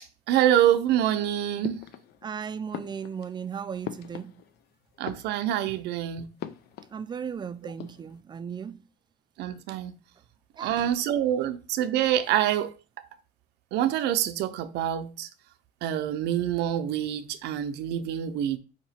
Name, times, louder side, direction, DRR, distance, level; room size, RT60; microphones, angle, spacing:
voice 1, 0.3-1.8 5.0-6.3 7.6-7.7 9.4-10.0 10.6-12.7 13.7-15.3 15.8-18.6, right 11 dB, 85° right, 0.5 m, -26 dB
sound 1, 1.6-2.4 2.7-4.7 4.9-5.8 6.4-7.4 7.6-8.2, left 10 dB, 70° left, 0.5 m, -41 dB
voice 2, 2.2-4.3 6.9-8.8 10.6-10.9, right 7 dB, 25° right, 0.4 m, -36 dB
4.4 x 2.9 x 4.2 m
cardioid pair, 110°, 17 cm